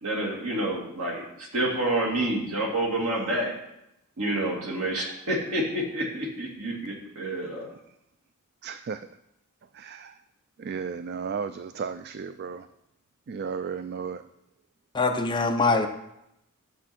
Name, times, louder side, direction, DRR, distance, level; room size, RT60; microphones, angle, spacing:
voice 1, 0.0-3.6 4.2-7.7, right 1 dB, 75° right, -1 dB, 2.5 m, -28 dB
voice 2, 8.6-9.0 9.8-10.1 10.6-12.6 13.3-14.2, right 6 dB, 45° right, 11 dB, 0.3 m, -34 dB
voice 3, 14.9-15.9, left 3 dB, 20° left, 4 dB, 0.8 m, -23 dB
11.5 x 7.2 x 4.4 m, 0.83 s
head